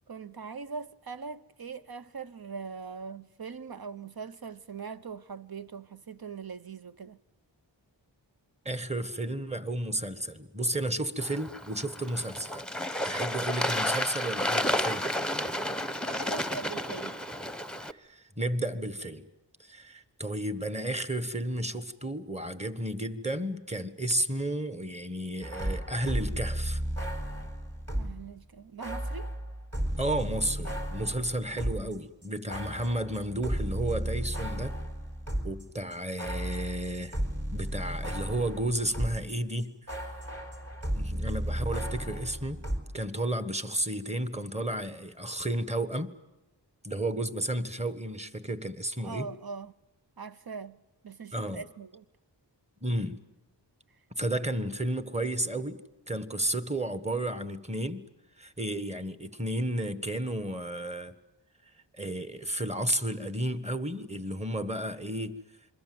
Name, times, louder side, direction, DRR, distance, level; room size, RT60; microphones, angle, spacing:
voice 1, 0.1-7.2 16.0-17.2 27.9-29.3 49.0-49.7 50.2-50.8 51.0-52.0, right 5 dB, 50° right, 0.9 m, -41 dB
voice 2, 8.6-12.6 13.0-15.1 17.9-19.2 19.6-26.8 30.0-34.8 35.4-37.2 37.5-40.2 40.9-42.6 42.9-46.1 46.8-49.3 51.3-51.6 52.8-53.2 54.2-55.8 56.1-58.1 58.4-61.1 61.9-65.4, right 1 dB, 15° right, 1.5 m, -32 dB
Bird / Water, 11.2-17.9, left 1 dB, ahead, 1.0 m, -31 dB
sound 1, 25.4-28.3 28.8-32.0 32.2-39.3 39.6-42.8, equal, 30° right, 4.0 m, -34 dB
27.5 x 22.5 x 7.9 m
wide cardioid pair, 50°, 46 cm